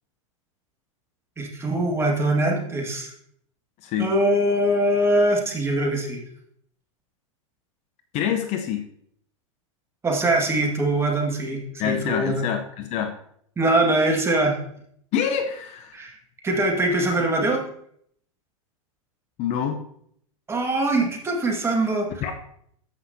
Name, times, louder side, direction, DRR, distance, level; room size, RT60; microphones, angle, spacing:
voice 1, 1.4-3.1 4.0-6.2 10.0-12.4 13.6-14.6 15.9-16.1 16.4-17.6 20.5-22.1, right 1 dB, 15° right, 1 dB, 1.8 m, -22 dB
voice 2, 8.1-8.8 11.8-13.1 15.1-16.0 19.4-19.8 22.2-22.3, left 8 dB, 40° left, 6 dB, 0.8 m, -26 dB
14.0 x 5.7 x 2.7 m, 0.68 s
hypercardioid pair, 120°, 17 cm